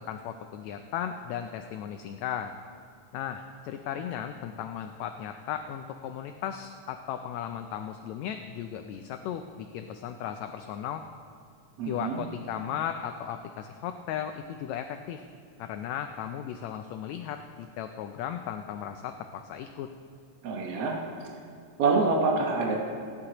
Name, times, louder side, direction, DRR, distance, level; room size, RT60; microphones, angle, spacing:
voice 1, 0.0-2.5 3.1-11.0 11.9-15.2 15.6-19.9, left 9 dB, 80° left, 6 dB, 1.7 m, -36 dB
voice 2, 11.8-12.2 20.4-21.0 21.8-22.8, right 3 dB, 60° right, -1 dB, 1.9 m, -26 dB
26.5 x 9.8 x 2.9 m, 2.3 s
omnidirectional pair, 3.5 m